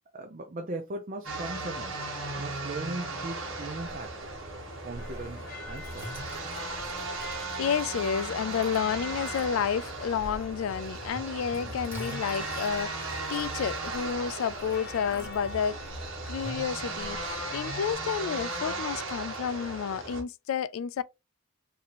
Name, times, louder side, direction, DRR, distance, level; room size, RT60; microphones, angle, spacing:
voice 1, 0.1-2.0 2.3-4.3 4.8-6.1 11.5-11.8, right 2 dB, 40° right, 0.5 m, -38 dB
sound 1, 1.2-20.2, right 2 dB, 65° right, 1.1 m, -36 dB
Chink clink, 3.8-17.4, right 1 dB, 10° right, 0.8 m, -49 dB
sound 2, 5.0-17.9, left 4 dB, 45° left, 1.1 m, -47 dB
voice 2, 7.6-15.8 16.3-21.0, left 7 dB, 70° left, 0.3 m, -30 dB
4.1 x 2.7 x 2.9 m
head